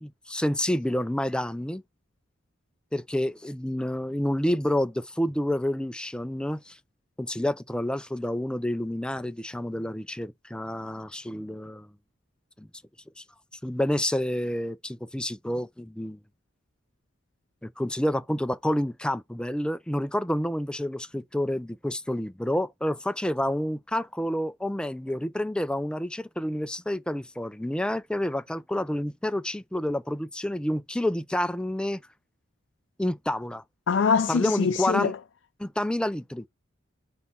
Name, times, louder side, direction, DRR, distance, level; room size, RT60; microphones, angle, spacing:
voice 1, 0.0-1.8 2.9-6.8 7.2-11.9 12.6-12.7 13.2-13.3 13.6-16.2 17.6-32.0 33.0-33.6 34.3-35.1 35.6-36.5, left 1 dB, 5° left, 0.4 m, -29 dB
voice 2, 33.9-35.2, left 5 dB, 80° left, 0.4 m, -24 dB
4.4 x 4.1 x 5.3 m
head